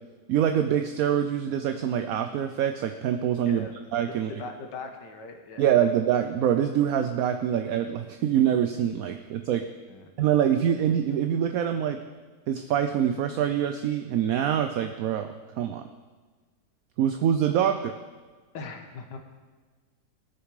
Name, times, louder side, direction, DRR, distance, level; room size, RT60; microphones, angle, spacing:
voice 1, 0.3-4.3 5.6-9.7 10.2-12.0 12.5-15.9 17.0-17.9, right 9 dB, 65° right, 8 dB, 0.9 m, -25 dB
voice 2, 4.1-5.7 9.9-10.1 18.5-19.2, left 4 dB, 85° left, 4 dB, 1.9 m, -40 dB
19.0 x 6.9 x 4.8 m, 1.4 s
omnidirectional pair, 1.8 m